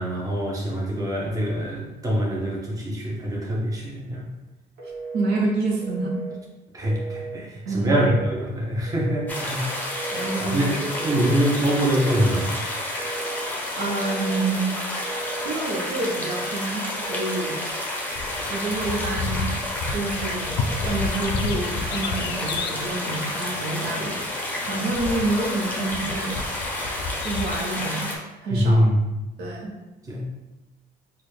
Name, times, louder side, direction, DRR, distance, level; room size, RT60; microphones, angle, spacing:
voice 1, 0.0-4.3 6.7-9.6 10.5-10.7 11.0-12.8 28.5-28.9 30.1-30.2, equal, 20° right, -3 dB, 0.8 m, -24 dB
Telephone, 4.8-5.4 5.8-6.4 6.8-7.4 7.8-8.4 8.9-9.4 9.9-10.5 10.9-11.5 11.9-12.5 12.9-13.5 14.0-14.5 15.0-15.6 16.0-16.6 17.0-17.6, right 4 dB, 55° right, 1.2 m, -36 dB
voice 2, 5.1-6.2 7.6-8.0 10.1-11.4 13.7-14.7 15.4-17.6 18.5-19.5 19.9-24.2 24.6-26.4 27.2-28.1 28.4-28.9 29.4-29.7, right 2 dB, 75° right, -2 dB, 0.8 m, -28 dB
sound 1, 9.3-28.2, left 1 dB, 10° left, 0.7 m, -30 dB
sound 2, 18.1-27.6, left 4 dB, 80° left, 0.4 m, -32 dB
4.0 x 2.3 x 3.2 m, 1.0 s
cardioid pair, 110°, 17 cm